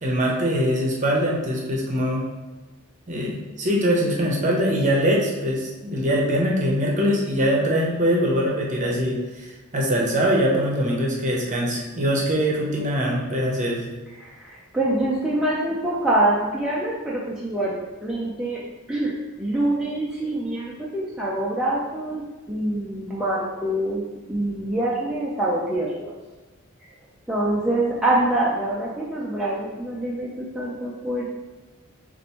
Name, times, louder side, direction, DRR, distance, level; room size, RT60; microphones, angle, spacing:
voice 1, 0.0-2.2 3.1-13.8, equal, 35° right, -2 dB, 0.8 m, -22 dB
voice 2, 14.2-18.6 18.9-24.0 24.3-26.1 27.3-31.3, right 1 dB, 5° right, -6 dB, 0.4 m, -25 dB
6.5 x 2.5 x 3.0 m, 1.2 s
head